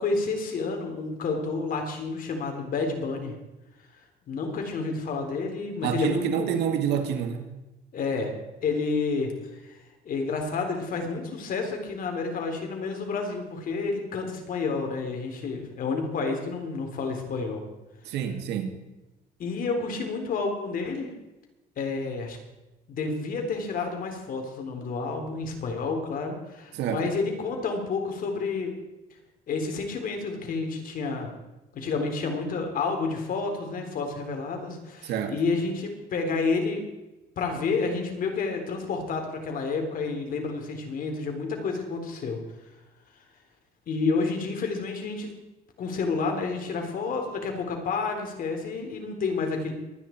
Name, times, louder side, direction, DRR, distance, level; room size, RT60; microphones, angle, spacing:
voice 1, 0.0-3.3 4.3-6.5 7.9-8.3 8.6-17.6 19.4-21.1 21.8-22.4 22.9-28.7 29.5-31.3 31.7-36.8 37.4-42.4 43.9-45.3 45.8-49.7, left 4 dB, 55° left, 3 dB, 3.6 m, -30 dB
voice 2, 5.8-7.5 18.0-18.8 26.7-27.0 35.0-35.4, right 8 dB, 80° right, 6 dB, 2.0 m, -28 dB
23.0 x 9.8 x 4.5 m, 1.0 s
cardioid pair, 110°, 17 cm